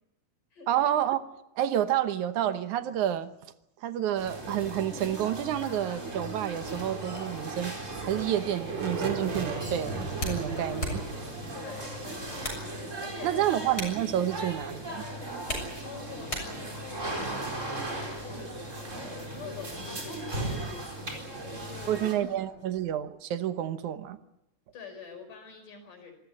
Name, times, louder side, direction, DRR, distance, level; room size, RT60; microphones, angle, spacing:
voice 1, 0.7-1.2 1.6-3.3 3.8-7.7 8.0-11.0 13.2-15.1 21.9-24.2, right 11 dB, 75° right, 11 dB, 2.4 m, -29 dB
sound 1, 4.2-22.1, right 1 dB, 25° right, 4.4 m, -38 dB
sound 2, 5.8-13.6, right 3 dB, 45° right, 3.6 m, -39 dB
sound 3, 8.4-23.1, equal, 20° left, 7.0 m, -43 dB
voice 2, 11.5-12.5 13.0-13.4 15.8-17.2 17.7-22.6 24.7-26.1, left 5 dB, 90° left, 5 dB, 6.4 m, -46 dB
26.0 x 14.5 x 10.0 m, 0.86 s
omnidirectional pair, 3.6 m